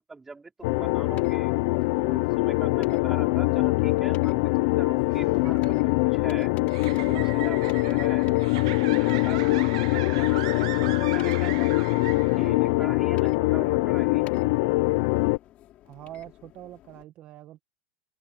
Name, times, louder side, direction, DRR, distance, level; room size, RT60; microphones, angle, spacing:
voice 1, 0.0-1.5 2.0-6.5 7.0-8.3 8.7-10.6 11.0-11.9 12.3-14.3, right 3 dB, 10° right, 4.6 m, -43 dB
sound 1, 0.6-15.4, left 23 dB, 60° left, 0.5 m, -23 dB
sound 2, 0.6-17.0, left 14 dB, 40° left, 6.4 m, -53 dB
sound 3, 5.1-12.7, right 17 dB, 75° right, 1.2 m, -38 dB
voice 2, 15.8-17.6, right 14 dB, 40° right, 1.4 m, -44 dB
supercardioid pair, 140°, 3 cm